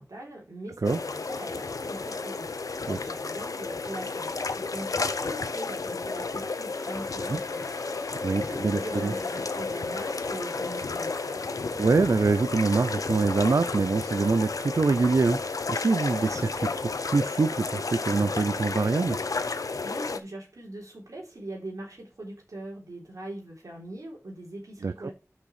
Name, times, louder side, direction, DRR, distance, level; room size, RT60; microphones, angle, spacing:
voice 1, 0.0-7.7 8.1-11.4 19.8-25.1, right 1 dB, 85° right, 3.7 m, -41 dB
sound 1, 0.8-20.2, left 4 dB, 90° left, 0.6 m, -32 dB
sound 2, 6.7-12.1, left 2 dB, 30° left, 2.4 m, -49 dB
voice 2, 8.2-9.1 11.8-19.2 24.8-25.1, right 4 dB, 70° right, 0.4 m, -25 dB
6.4 x 5.9 x 4.8 m
wide cardioid pair, 50°, 6 cm